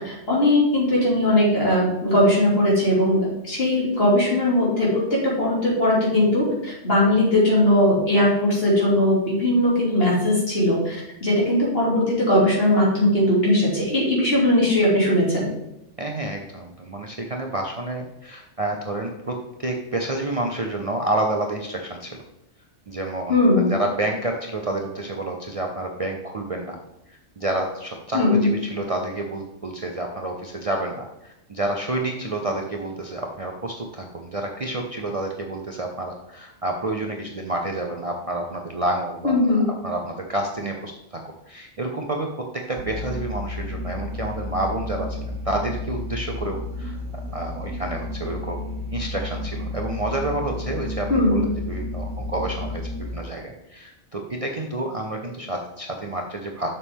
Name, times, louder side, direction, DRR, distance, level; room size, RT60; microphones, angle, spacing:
voice 1, 0.0-6.5 6.8-15.5 23.3-23.8 28.1-28.5 39.2-39.7 51.1-51.5, left 1 dB, 55° left, -5 dB, 3.1 m, -19 dB
voice 2, 16.0-22.2 22.9-26.8 27.1-42.3 42.5-47.0 47.3-48.6 48.9-56.7, right 2 dB, 35° right, 1 dB, 0.7 m, -29 dB
sound 1, 42.8-53.2, left 2 dB, 90° right, 1.1 m, -32 dB
7.0 x 6.9 x 3.6 m, 0.90 s
omnidirectional pair, 1.2 m